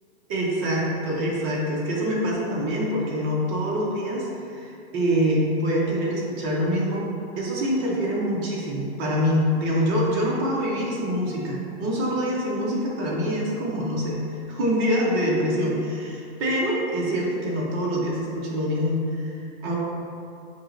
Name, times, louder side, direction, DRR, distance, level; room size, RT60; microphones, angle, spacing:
voice 1, 0.3-7.0 7.4-19.8, equal, 25° right, -4 dB, 0.6 m, -25 dB
5.4 x 2.9 x 2.5 m, 2.6 s
supercardioid pair, 165°, 32 cm